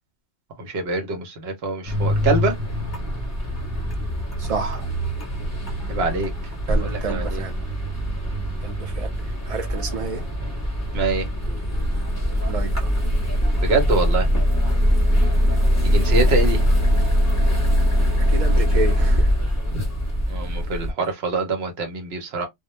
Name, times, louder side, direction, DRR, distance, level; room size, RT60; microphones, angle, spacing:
voice 1, 0.6-2.5 5.9-6.3 6.8-7.4 10.9-11.3 13.6-14.3 15.8-16.6 19.7-19.8 20.3-22.5, right 3 dB, 65° right, 1.0 m, -24 dB
sound 1, 1.9-20.9, equal, 20° left, 0.5 m, -22 dB
voice 2, 4.4-4.9 6.7-7.5 8.6-9.1 9.4-10.2 12.4-12.9 18.3-19.3, right 4 dB, 40° right, 0.7 m, -29 dB
2.3 x 2.1 x 2.9 m
omnidirectional pair, 1.2 m